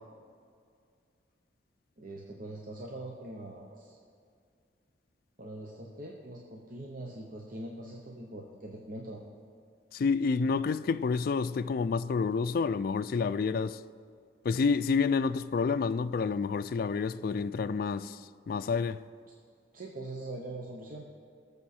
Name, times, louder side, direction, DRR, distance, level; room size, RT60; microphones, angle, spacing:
voice 1, 2.0-4.0 5.4-9.2 10.4-10.6 19.7-21.1, right 1 dB, 50° right, 0.9 m, -42 dB
voice 2, 9.9-13.8 14.4-18.2 18.5-19.0, left 5 dB, 55° left, 0.3 m, -29 dB
18.5 x 6.9 x 4.3 m
head